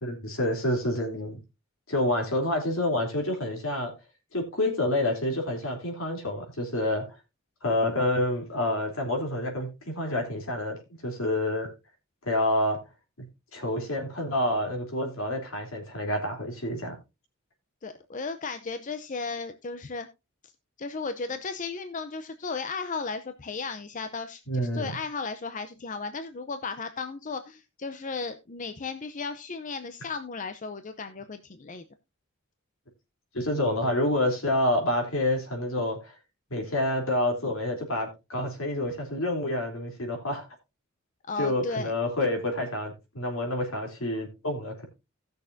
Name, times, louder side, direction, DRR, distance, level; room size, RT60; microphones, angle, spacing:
voice 1, 0.0-1.4 1.9-3.9 4.3-7.1 7.6-10.8 11.0-11.7 12.2-12.8 13.5-16.9 24.5-25.0 33.3-36.1 36.5-40.4 41.4-44.9, left 1 dB, 75° left, 3.2 m, -28 dB
voice 2, 17.8-20.1 20.8-31.8 41.3-41.9, left 4 dB, 40° left, 0.6 m, -35 dB
17.5 x 6.5 x 2.6 m
head